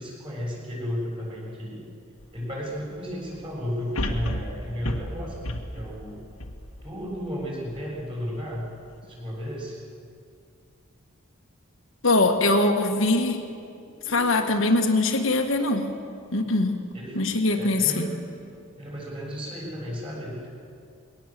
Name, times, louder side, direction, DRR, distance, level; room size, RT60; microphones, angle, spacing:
voice 1, 0.0-1.9 2.3-6.2 6.8-8.7 9.0-9.8 16.9-17.3 17.6-18.1 18.8-20.5, equal, 25° right, -4 dB, 7.2 m, -33 dB
sound 1, 2.2-2.3 4.0-7.3 7.8-7.9, left 1 dB, 80° left, 1.7 m, -32 dB
voice 2, 12.0-13.4 14.1-15.9 16.3-16.8 17.2-18.1, left 2 dB, 65° left, 3 dB, 1.6 m, -22 dB
sound 2, 13.9-15.1 16.4-18.6, equal, 55° right, 3.3 m, -50 dB
21.5 x 19.0 x 7.5 m, 2.4 s
head